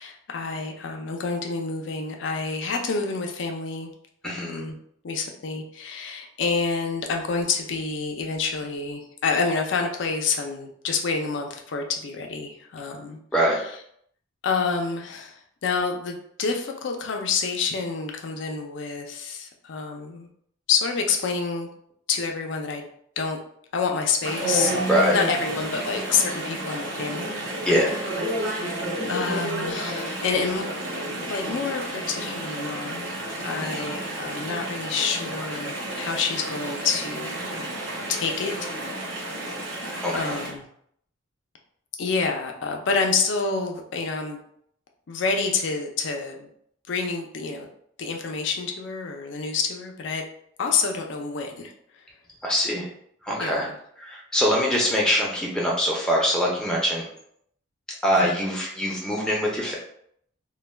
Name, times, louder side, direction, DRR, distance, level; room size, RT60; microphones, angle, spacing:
voice 1, 0.0-3.9 4.2-4.8 5.0-13.2 14.4-20.3 20.7-21.7 22.1-22.9 23.2-23.4 23.7-24.7 25.1-27.4 28.4-30.6 31.3-33.1 33.4-37.7 38.1-38.7 39.0-39.5 40.1-40.6 42.0-44.4 45.1-46.5 46.9-47.7 48.0-50.2 50.6-52.0 53.4-53.6 58.2-58.3, left 5 dB, 60° left, 3 dB, 0.4 m, -28 dB
voice 2, 4.2-4.6 13.3-13.6 24.9-25.2 27.6-28.0 33.6-34.0 40.0-40.3 52.4-52.9 53.2-53.7 54.0-57.1 57.9-59.8, equal, 5° left, -4 dB, 0.5 m, -23 dB
Chatter / Stream, 24.2-40.5, right 1 dB, 70° right, 0.8 m, -31 dB
2.2 x 2.2 x 3.2 m, 0.68 s
head